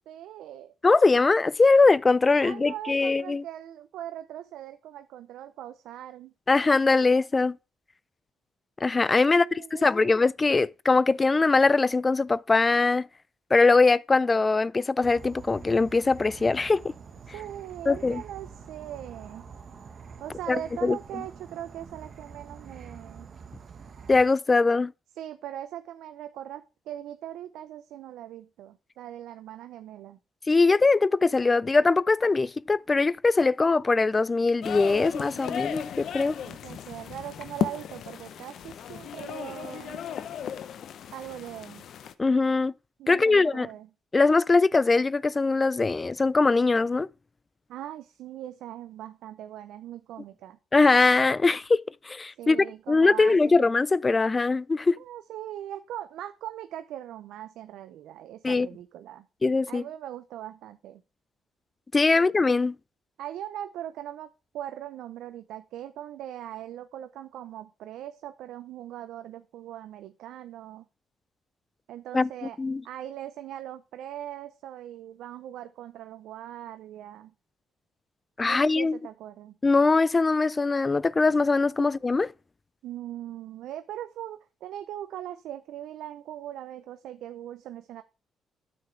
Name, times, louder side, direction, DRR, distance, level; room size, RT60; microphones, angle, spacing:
voice 1, 0.0-0.7 2.4-6.3 9.3-10.1 17.3-19.4 20.2-23.3 25.2-30.2 36.4-40.0 41.1-41.8 43.0-43.9 47.7-50.6 52.4-53.7 55.0-59.3 59.7-61.0 62.1-62.2 63.2-70.9 71.9-72.6 72.8-77.3 78.5-79.5 81.8-81.9 82.8-88.0, right 12 dB, 85° right, 0.5 m, -40 dB
voice 2, 0.8-3.4 6.5-7.6 8.8-13.1 13.5-16.9 17.9-18.2 20.5-21.0 24.1-24.9 30.5-36.4 42.2-42.7 43.1-43.7 44.1-47.1 50.7-52.6 52.9-55.0 58.4-58.7 59.4-59.8 61.9-62.8 72.1-72.3 72.6-72.8 78.4-79.0 79.6-82.3, left 3 dB, 25° left, 0.3 m, -22 dB
Insect / Frog, 15.0-24.2, right 5 dB, 50° right, 1.4 m, -46 dB
sound 1, 34.6-42.1, left 9 dB, 70° left, 0.7 m, -35 dB
9.4 x 7.0 x 3.2 m
cardioid pair, 90°, 0 cm